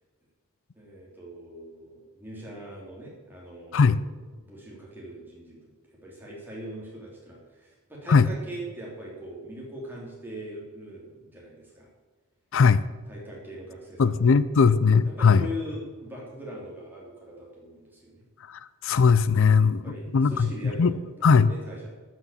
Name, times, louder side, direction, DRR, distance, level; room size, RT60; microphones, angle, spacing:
voice 1, 0.7-3.9 4.4-5.7 6.0-11.9 13.1-14.4 14.8-18.2 19.6-21.9, equal, 10° right, -4 dB, 3.3 m, -41 dB
voice 2, 14.0-15.5 18.5-19.8 20.1-20.5 20.8-20.9 21.2-21.5, left 5 dB, 60° left, 16 dB, 0.5 m, -19 dB
12.5 x 6.1 x 7.3 m, 1.3 s
head